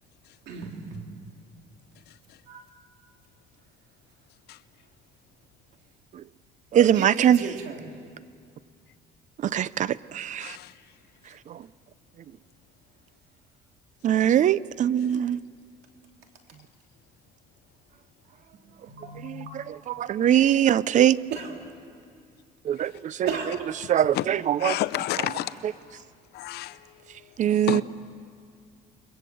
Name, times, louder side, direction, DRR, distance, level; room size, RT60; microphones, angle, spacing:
voice 1, 0.5-1.1 2.5-2.6 6.9-7.9 18.9-19.5 21.3-21.5 23.3-23.6, right 5 dB, 75° right, 3.3 m, -34 dB
voice 2, 2.1-2.4 4.5-4.6 10.4-10.9 15.0-15.2 22.8-23.0 23.8-24.3 24.6-25.6 25.9-26.1 26.3-27.8, left 14 dB, 75° left, 0.8 m, -33 dB
voice 3, 6.7-7.4 9.4-10.6 11.5-11.6 14.0-15.4 19.2-21.2 22.6-23.3 23.9-24.7 27.4-27.8, right 10 dB, 45° right, 0.5 m, -22 dB
29.0 x 22.5 x 7.8 m
cardioid pair, 110°, 17 cm